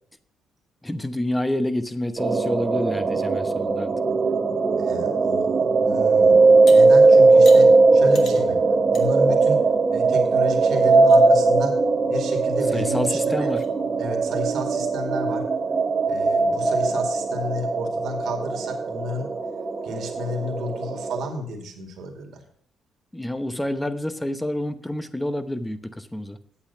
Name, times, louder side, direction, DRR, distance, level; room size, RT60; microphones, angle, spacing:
voice 1, 0.8-3.9 12.7-13.6 23.1-26.4, left 1 dB, 10° left, 12 dB, 0.9 m, -28 dB
sound 1, 2.2-21.3, right 3 dB, 35° right, 1.2 m, -19 dB
voice 2, 4.8-6.4 6.7-8.6 8.9-9.6 9.9-11.7 12.1-13.5 14.0-15.4 16.1-19.3 19.8-22.4, left 1 dB, 70° right, 4 dB, 2.3 m, -32 dB
sound 2, 6.7-6.8 7.5-7.6 8.1-8.4 8.9-9.1 9.5-9.6 10.3-10.4 10.8-11.2 12.8-12.9 13.4-13.7, left 5 dB, 65° left, 1.8 m, -39 dB
8.7 x 8.4 x 5.7 m, 0.62 s
cardioid pair, 90°, 0 cm